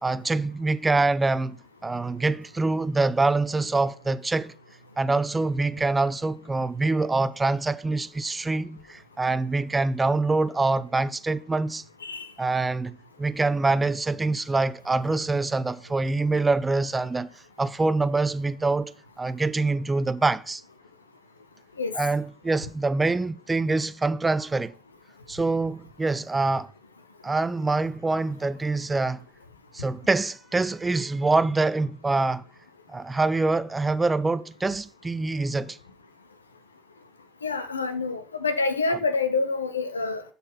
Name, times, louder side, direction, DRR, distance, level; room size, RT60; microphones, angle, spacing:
voice 1, 0.0-4.5 5.0-11.8 12.4-17.3 17.6-20.6 21.9-24.7 25.3-26.7 27.2-29.3 29.7-32.5 32.9-35.8 38.9-39.0, right 3 dB, 20° right, 0.6 m, -25 dB
voice 2, 37.4-40.2, left 4 dB, 85° left, 0.8 m, -27 dB
11.0 x 4.3 x 5.6 m
figure-of-eight pair, 60°, 0 cm